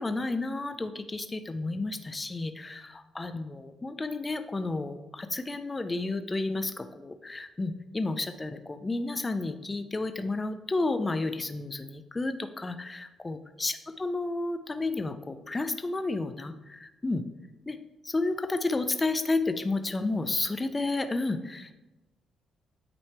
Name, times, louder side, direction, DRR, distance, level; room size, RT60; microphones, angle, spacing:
voice 1, 0.0-17.2 17.7-17.8 18.0-21.7, left 2 dB, 20° left, 9 dB, 0.4 m, -31 dB
8.6 x 3.1 x 4.4 m, 1.0 s
cardioid pair, 90°, 0 cm